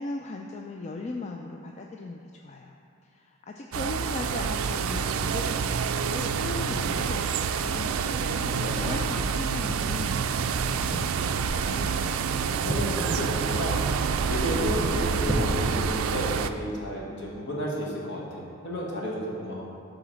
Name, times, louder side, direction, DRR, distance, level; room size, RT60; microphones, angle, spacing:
voice 1, 0.0-2.8 3.0-10.5, left 2 dB, 35° left, 1 dB, 0.4 m, -38 dB
sound 1, 3.7-16.5, right 6 dB, 85° right, 0.4 m, -28 dB
sound 2, 5.7-15.9, right 1 dB, 15° right, 0.8 m, -35 dB
voice 2, 11.5-12.2 12.5-13.8 14.3-19.5, equal, 60° left, -4 dB, 1.6 m, -32 dB
9.1 x 3.9 x 6.1 m, 2.4 s
head